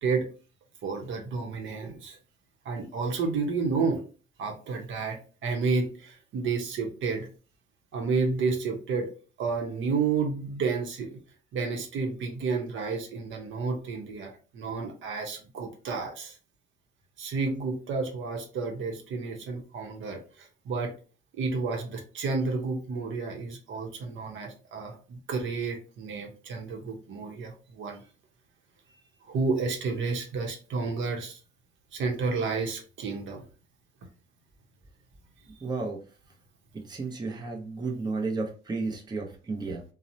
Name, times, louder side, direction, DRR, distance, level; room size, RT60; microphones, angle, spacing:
voice 1, 0.8-2.2 2.6-4.0 4.4-7.3 7.9-9.1 9.4-11.2 11.5-16.4 17.2-20.9 21.3-28.0 29.3-31.4 31.9-33.4, right 4 dB, 75° right, 3 dB, 0.7 m, -31 dB
voice 2, 35.6-36.0 36.8-39.8, right 3 dB, 20° right, 1 dB, 0.6 m, -32 dB
2.8 x 2.0 x 2.5 m, 0.36 s
cardioid pair, 90°, 20 cm